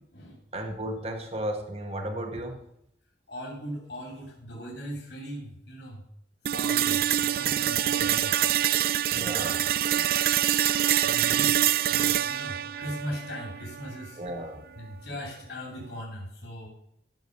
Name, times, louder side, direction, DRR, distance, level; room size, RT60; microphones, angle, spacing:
voice 1, 0.5-2.6 8.0-8.1 9.1-10.1 14.2-14.6, right 1 dB, 35° right, 5 dB, 1.1 m, -35 dB
voice 2, 3.3-6.0 6.5-8.8 9.1-9.5 11.0-14.2 14.8-16.7, equal, 75° left, -2 dB, 3.2 m, -39 dB
sound 1, 6.5-14.5, right 11 dB, 55° right, 0.3 m, -25 dB
13.5 x 6.5 x 5.4 m, 0.78 s
head